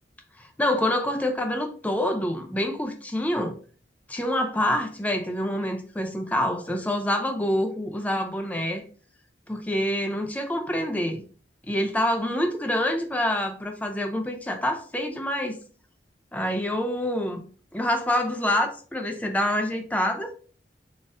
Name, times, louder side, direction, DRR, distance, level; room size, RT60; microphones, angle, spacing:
voice 1, 0.4-3.5 4.1-8.8 9.5-11.2 11.7-15.6 16.3-17.4 17.7-20.3, left 1 dB, 10° left, 5 dB, 0.4 m, -26 dB
4.0 x 2.5 x 3.5 m, 0.42 s
head